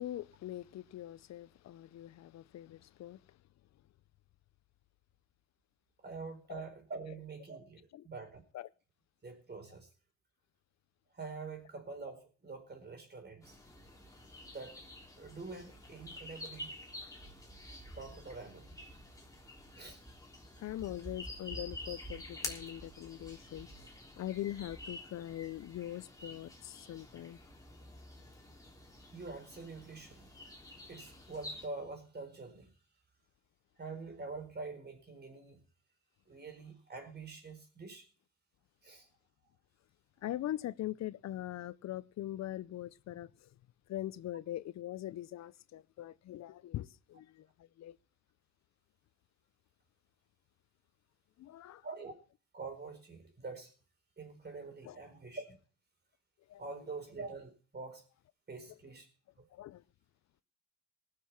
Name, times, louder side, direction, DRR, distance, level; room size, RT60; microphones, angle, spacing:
voice 1, 0.0-3.4 6.5-6.6 7.9-8.1 8.5-8.7 20.6-23.9 24.2-27.4 40.2-43.6 43.9-48.0 51.4-51.8 54.8-55.0 56.5-56.6 58.7-58.8 59.5-59.8, left 13 dB, 60° left, 0.5 m, -42 dB
voice 2, 6.0-8.4 9.2-9.9 11.1-13.6 14.5-14.7 15.2-16.8 18.0-18.7 19.7-20.0 29.1-30.4 30.9-32.7 33.8-35.6 36.3-38.1 38.8-39.1 51.8-52.1 52.5-53.7 54.2-55.6 56.6-58.0 58.5-59.1 59.4-59.5, right 3 dB, 35° right, 4.4 m, -45 dB
sound 1, 13.4-31.7, left 1 dB, 10° left, 3.4 m, -49 dB
19.0 x 6.7 x 5.8 m
cardioid pair, 90°, 30 cm